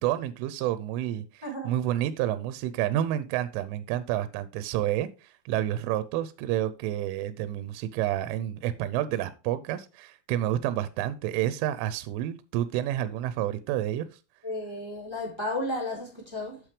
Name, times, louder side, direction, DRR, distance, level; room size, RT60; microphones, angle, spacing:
voice 1, 0.0-5.1 5.5-14.1, right 12 dB, 85° right, 3.1 m, -29 dB
voice 2, 1.4-1.7 14.4-16.6, left 1 dB, 5° right, 2.6 m, -33 dB
9.0 x 8.1 x 3.3 m
omnidirectional pair, 5.8 m